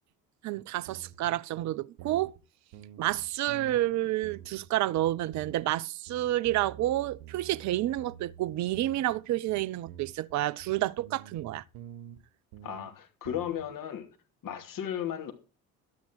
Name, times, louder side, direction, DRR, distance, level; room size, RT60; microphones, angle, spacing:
voice 1, 0.4-2.3 3.0-11.6, right 15 dB, 40° right, 0.6 m, -29 dB
sound 1, 0.9-1.3 1.6-1.7 2.0-2.4 2.7-3.9 4.2-4.7 5.0-5.8 6.1-9.2 9.5-12.2 12.5-12.9 13.2-13.7, right 10 dB, 60° right, 1.4 m, -48 dB
voice 2, 12.6-14.1 14.4-15.3, left 10 dB, 45° left, 2.8 m, -35 dB
12.5 x 9.4 x 4.7 m
figure-of-eight pair, 55°, 44 cm